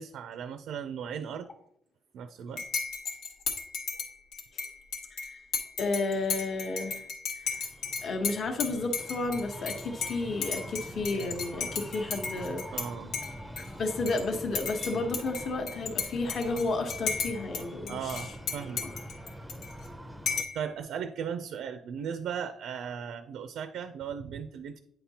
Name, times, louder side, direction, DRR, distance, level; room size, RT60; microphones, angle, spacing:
voice 1, 0.0-1.5 2.1-2.6 12.7-13.2 17.9-18.8 20.5-24.8, right 7 dB, 80° right, 9 dB, 0.4 m, -37 dB
Dishes pots and pans / Cutlery silverware / Chink clink, 2.6-12.9 13.1-14.2 14.5-17.6 17.9-19.9 20.3-20.6, left 5 dB, 90° left, 1.2 m, -35 dB
voice 2, 5.8-7.1 7.5-7.7 8.0-12.6 13.6-18.2 18.8-18.9, left 3 dB, 50° left, 4 dB, 1.0 m, -32 dB
Breathing, 7.4-20.4, equal, ahead, 0.5 m, -44 dB
8.9 x 5.8 x 2.8 m, 0.72 s
cardioid pair, 145°, 0 cm